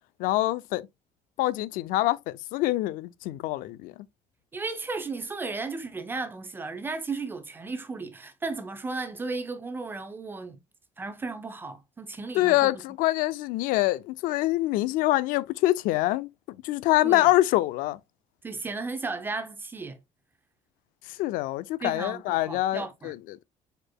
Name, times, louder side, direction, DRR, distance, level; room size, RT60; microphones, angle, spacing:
voice 1, 0.2-0.9 1.4-3.9 12.3-16.3 16.6-18.0 21.1-23.4, left 17 dB, 75° left, 0.4 m, -25 dB
voice 2, 4.5-10.6 11.0-12.8 17.0-17.3 18.4-20.0 21.8-23.1, right 3 dB, 15° right, 0.5 m, -35 dB
4.8 x 4.5 x 2.2 m
cardioid pair, 170°, 14 cm